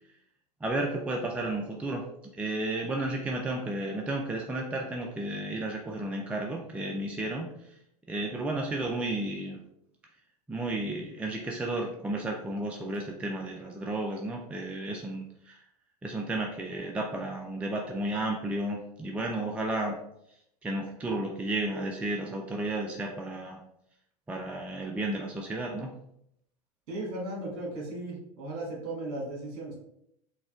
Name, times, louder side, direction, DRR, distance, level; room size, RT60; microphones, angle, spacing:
voice 1, 0.6-2.0 2.4-7.5 8.1-9.6 10.5-15.6 16.0-20.0 20.6-23.6 24.3-25.9, right 2 dB, 5° right, 0 dB, 0.3 m, -32 dB
voice 2, 26.9-29.8, right 2 dB, 50° right, -3 dB, 1.3 m, -36 dB
4.0 x 2.2 x 2.4 m, 0.74 s
figure-of-eight pair, 80°, 20 cm